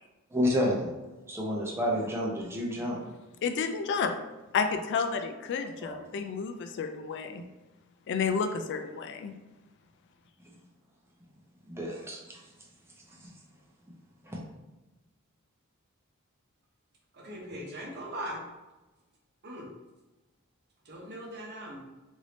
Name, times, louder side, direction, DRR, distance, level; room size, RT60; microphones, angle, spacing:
voice 1, 0.3-0.9 1.3-3.0 5.8-5.9 11.7-12.5 13.1-13.3 14.2-14.4, left 1 dB, 10° right, -3 dB, 0.6 m, -30 dB
voice 2, 3.4-4.1 4.5-7.5 8.1-9.4, left 5 dB, 55° left, 7 dB, 0.3 m, -31 dB
voice 3, 17.1-18.4 19.4-19.7 20.8-21.9, right 1 dB, 50° right, -1 dB, 0.8 m, -40 dB
3.3 x 2.6 x 2.9 m, 1.1 s
head